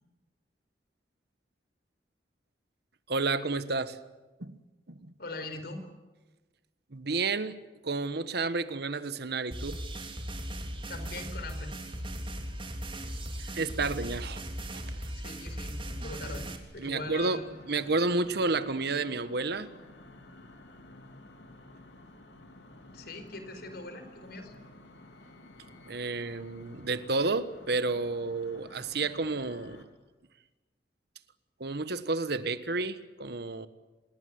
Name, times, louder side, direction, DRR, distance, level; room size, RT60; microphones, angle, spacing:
voice 1, 3.1-4.0 4.4-4.6 4.9-5.1 6.9-7.6 7.8-9.8 13.5-14.4 14.9-15.0 16.8-17.4 17.7-19.7 25.9-29.8 31.6-33.7, right 3 dB, 65° right, 13 dB, 1.4 m, -31 dB
voice 2, 5.2-5.8 10.9-11.7 15.1-16.5 16.7-17.4 22.9-24.5, left 2 dB, 60° left, 9 dB, 4.5 m, -41 dB
sound 1, 9.5-16.6, right 1 dB, 30° right, 3.3 m, -38 dB
sound 2, 17.0-29.9, left 1 dB, 80° left, 3.5 m, -52 dB
27.5 x 19.5 x 9.7 m, 1.2 s
head